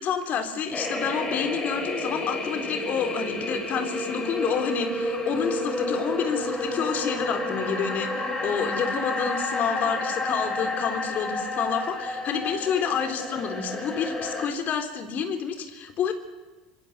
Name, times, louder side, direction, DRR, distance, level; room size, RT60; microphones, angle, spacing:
voice 1, 0.0-16.1, left 7 dB, 45° left, 7 dB, 3.7 m, -29 dB
sound 1, 0.7-14.5, left 2 dB, 20° left, 6.9 m, -30 dB
26.5 x 22.0 x 6.8 m, 1.2 s
hypercardioid pair, 70°, 4 cm